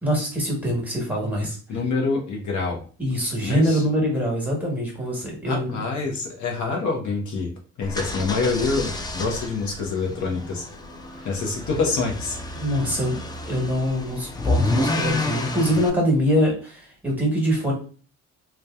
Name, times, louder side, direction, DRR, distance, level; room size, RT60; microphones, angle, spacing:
voice 1, 0.0-1.6 3.0-5.8 11.2-11.3 12.6-17.7, equal, 5° right, -2 dB, 1.2 m, -24 dB
voice 2, 1.7-2.8 3.4-3.8 5.4-7.5 7.8-10.7 11.2-12.4, left 4 dB, 70° left, 0 dB, 0.8 m, -26 dB
sound 1, 7.8-15.9, left 2 dB, 15° left, 0.3 m, -29 dB
2.7 x 2.3 x 2.3 m, 0.39 s
cardioid pair, 90°, 30 cm